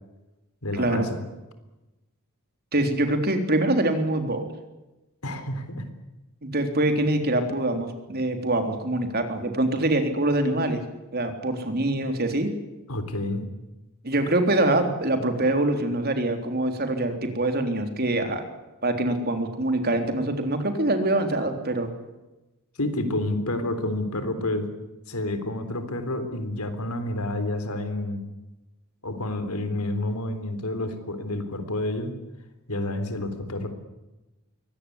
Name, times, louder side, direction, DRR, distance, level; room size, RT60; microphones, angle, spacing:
voice 1, 0.6-1.2 5.2-5.9 12.9-13.4 22.8-24.7 25.1-28.2 29.0-32.1 32.7-33.7, left 1 dB, 85° left, 10 dB, 3.7 m, -29 dB
voice 2, 2.7-4.5 6.4-10.8 11.1-12.5 14.0-18.4 18.8-21.9, right 1 dB, 45° right, 6 dB, 3.6 m, -24 dB
23.5 x 18.5 x 9.8 m, 1.0 s
head